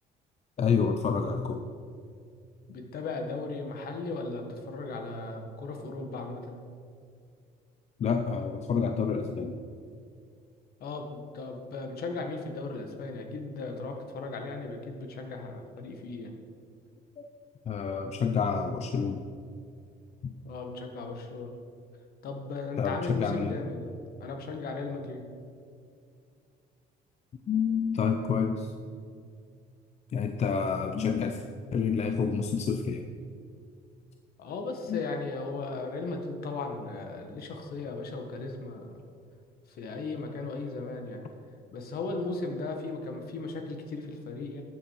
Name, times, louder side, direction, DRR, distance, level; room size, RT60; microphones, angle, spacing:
voice 1, 0.6-1.6 8.0-9.6 17.2-17.3 17.7-19.2 20.2-20.3 22.8-23.6 27.5-28.7 30.1-31.4 31.7-33.0 34.9-35.0, left 6 dB, 40° left, 6 dB, 0.6 m, -28 dB
voice 2, 2.7-6.6 10.8-16.3 20.4-21.5 22.2-23.9 24.2-25.2 34.4-39.0 39.7-41.2 41.7-44.6, left 3 dB, 65° left, 4 dB, 1.6 m, -36 dB
12.5 x 7.5 x 4.8 m, 2.3 s
cardioid pair, 110°, 17 cm